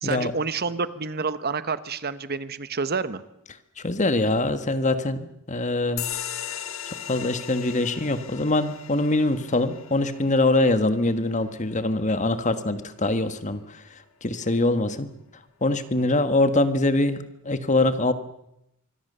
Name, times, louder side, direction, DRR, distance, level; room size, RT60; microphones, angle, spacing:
voice 1, 0.0-3.2 15.9-16.2, right 4 dB, 45° right, 13 dB, 1.1 m, -29 dB
voice 2, 3.8-6.0 7.1-13.8 14.2-15.1 15.6-18.1, left 2 dB, 35° left, 11 dB, 1.5 m, -23 dB
sound 1, 6.0-13.0, left 10 dB, 70° left, 1.7 m, -38 dB
25.5 x 22.5 x 6.8 m, 0.82 s
head